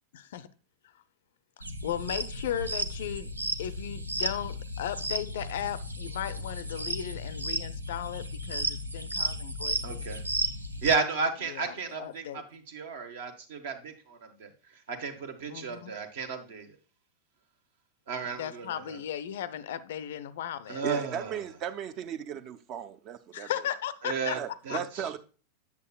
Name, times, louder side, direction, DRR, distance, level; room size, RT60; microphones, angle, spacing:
voice 1, 0.1-0.5 1.8-3.3 3.6-10.0 11.5-11.7 12.0-12.4 15.5-15.9 18.4-20.8 23.3-24.4 24.7-24.8, left 10 dB, 55° left, 0.4 m, -36 dB
sound 1, 1.6-10.9, right 1 dB, 80° right, 0.5 m, -34 dB
voice 2, 9.8-10.2 10.8-16.8 18.1-19.0 20.7-21.5 24.0-24.4 24.6-25.1, right 5 dB, 55° right, 1.1 m, -33 dB
voice 3, 20.8-23.7 24.3-25.2, right 9 dB, 35° right, 0.5 m, -36 dB
8.2 x 7.2 x 2.3 m
figure-of-eight pair, 90°, 0 cm